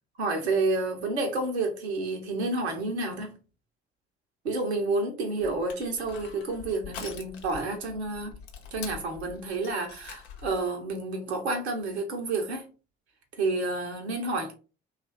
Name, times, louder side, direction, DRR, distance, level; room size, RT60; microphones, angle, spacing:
voice 1, 0.2-3.3 4.4-8.4 8.7-12.7 13.4-14.5, right 2 dB, 80° right, 0.8 m, -30 dB
Crushing, 5.4-10.6, left 7 dB, 75° left, 0.7 m, -45 dB
3.0 x 2.4 x 4.1 m
figure-of-eight pair, 45°, 32 cm